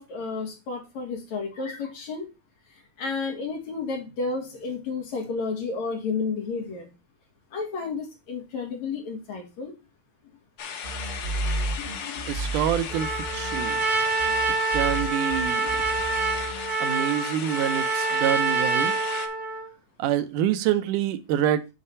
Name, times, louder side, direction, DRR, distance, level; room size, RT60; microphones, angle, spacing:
voice 1, 0.0-2.3 3.0-6.9 7.5-9.7 11.8-12.4, left 4 dB, 65° left, 3.3 m, -32 dB
sound 1, 10.6-19.3, left 7 dB, 90° left, 1.0 m, -36 dB
sound 2, 10.8-13.9 14.2-16.7, right 2 dB, 45° right, 3.0 m, -33 dB
voice 2, 12.3-13.8 14.7-15.7 16.8-19.0 20.0-21.7, right 10 dB, 85° right, 2.4 m, -26 dB
Trumpet, 12.9-19.7, right 4 dB, ahead, 4.7 m, -26 dB
9.4 x 6.5 x 2.6 m
omnidirectional pair, 3.6 m